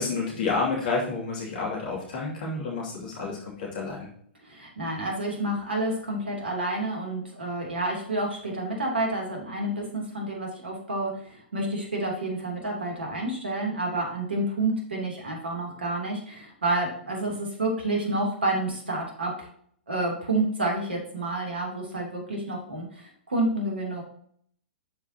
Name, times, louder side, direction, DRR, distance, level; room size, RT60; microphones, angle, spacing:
voice 1, 0.0-4.1, left 4 dB, 50° left, -2 dB, 2.5 m, -29 dB
voice 2, 4.4-19.5 19.9-24.0, right 2 dB, 70° right, -1 dB, 3.0 m, -29 dB
12.0 x 4.8 x 2.9 m, 0.62 s
figure-of-eight pair, 105°, 6 cm